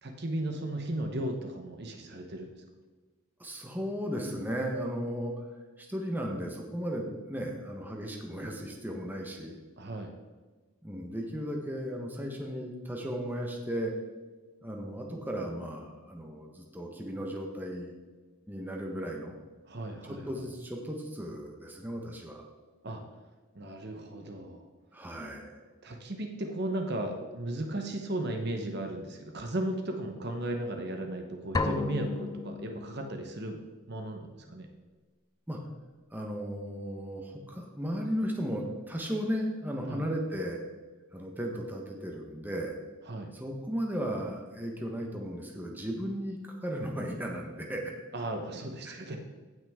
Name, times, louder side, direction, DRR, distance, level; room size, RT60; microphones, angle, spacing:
voice 1, 0.0-2.5 9.8-10.1 19.7-20.3 22.8-23.0 23.5-24.7 25.8-33.6 33.9-34.7 39.9-40.1 43.0-43.3 48.1-49.2, right 1 dB, 50° right, 4 dB, 1.0 m, -35 dB
voice 2, 3.4-5.4 5.8-9.6 10.8-13.9 14.6-17.9 18.5-19.4 20.1-22.5 24.9-25.5 35.5-35.6 36.1-40.6 41.1-42.7 43.3-47.9 48.8-48.9, equal, 10° right, 0 dB, 1.1 m, -35 dB
sound 1, 31.5-33.4, left 3 dB, 15° left, 0.3 m, -33 dB
16.5 x 6.1 x 3.6 m, 1.3 s
head